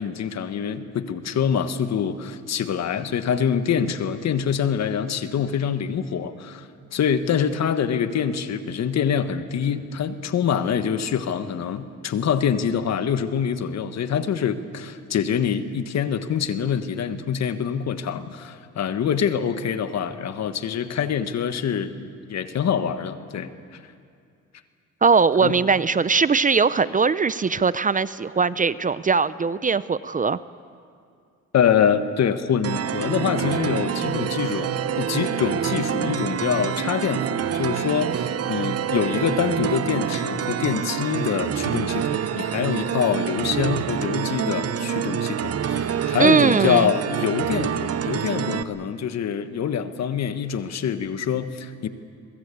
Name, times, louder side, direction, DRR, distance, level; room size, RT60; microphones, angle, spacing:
voice 1, 0.0-23.5 25.4-25.5 31.5-51.9, left 7 dB, 60° left, 10 dB, 1.5 m, -25 dB
voice 2, 25.0-30.4 46.2-46.9, right 5 dB, 25° right, 16 dB, 0.5 m, -20 dB
sound 1, 32.6-48.6, right 8 dB, 55° right, 0.9 m, -26 dB
22.5 x 22.0 x 8.5 m, 2.3 s
cardioid pair, 90°, 30 cm